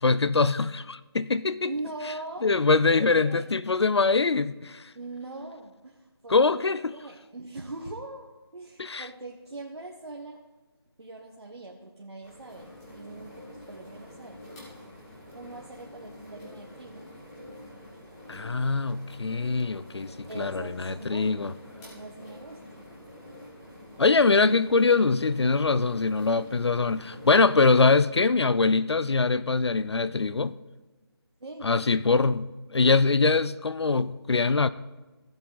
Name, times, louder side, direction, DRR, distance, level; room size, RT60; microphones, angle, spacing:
voice 1, 0.0-1.7 2.4-4.8 6.3-6.9 8.8-9.0 18.3-21.5 24.0-30.5 31.6-34.7, left 4 dB, 80° left, 0.6 m, -23 dB
voice 2, 1.7-2.5 2.9-3.4 4.9-6.6 6.9-10.4 11.0-14.4 15.3-17.0 20.3-21.5 21.8-22.9 31.4-31.7, right 2 dB, 80° right, 1.6 m, -41 dB
sound 1, 12.2-27.9, left 1 dB, 10° left, 1.9 m, -47 dB
16.0 x 8.0 x 4.1 m
figure-of-eight pair, 170°, 14 cm